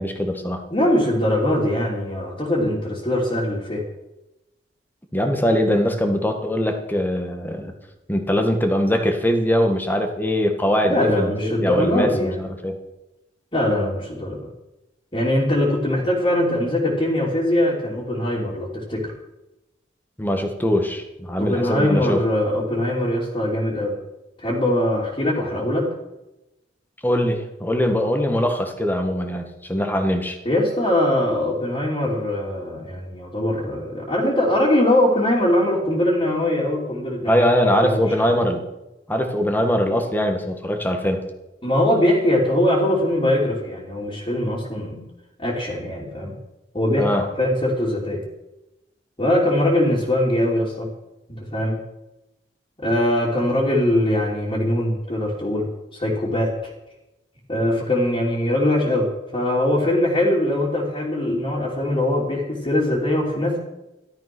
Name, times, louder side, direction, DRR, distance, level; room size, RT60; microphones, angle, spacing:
voice 1, 0.0-0.6 5.1-7.7 8.1-12.8 20.2-22.2 27.0-30.4 37.3-38.6 39.1-41.3 47.0-47.2, equal, 10° left, 5 dB, 1.9 m, -22 dB
voice 2, 0.7-3.8 10.8-12.5 13.5-14.5 15.1-19.1 21.4-23.9 24.4-25.9 30.4-37.5 37.8-38.3 41.6-45.0 45.4-46.3 46.7-48.2 49.2-50.9 51.5-51.8 52.8-56.5 57.5-63.6, left 1 dB, 30° left, -6 dB, 3.1 m, -22 dB
14.0 x 12.5 x 6.2 m, 0.96 s
head